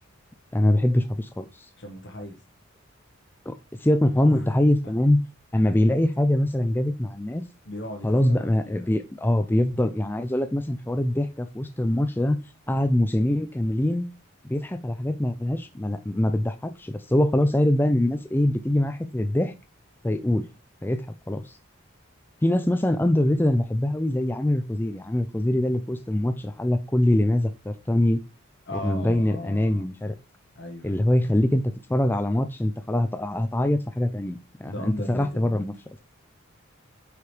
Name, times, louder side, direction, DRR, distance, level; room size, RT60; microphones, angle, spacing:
voice 1, 0.5-1.5 3.5-3.6 3.8-5.2 5.5-7.4 8.0-12.4 12.7-14.1 14.4-19.5 20.0-20.4 20.8-21.0 21.3-21.4 22.4-28.2 28.7-30.1 30.8-31.6 31.9-35.7, left 1 dB, 10° left, 0.4 m, -23 dB
voice 2, 1.8-2.4 4.3-4.9 7.6-8.9 28.7-29.9 30.5-31.0 34.6-35.6, left 1 dB, 55° left, 1.1 m, -37 dB
8.4 x 4.9 x 3.2 m
head